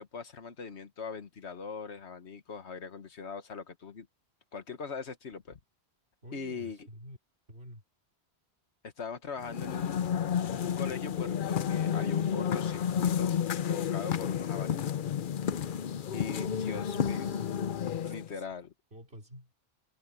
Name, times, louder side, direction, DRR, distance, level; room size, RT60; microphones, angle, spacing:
voice 1, 0.0-4.1 4.5-5.6 6.3-6.8 8.8-10.1 10.5-13.4 13.6-15.1 16.1-17.3 18.0-18.7, left 5 dB, 85° left, 1.6 m, -41 dB
voice 2, 6.2-7.2 7.5-7.8 15.8-16.1 16.4-17.5 18.0-18.5 18.9-19.5, equal, 65° right, 4.6 m, -49 dB
sound 1, 9.4-18.3, left 8 dB, 55° left, 0.8 m, -31 dB
omnidirectional pair, 1.1 m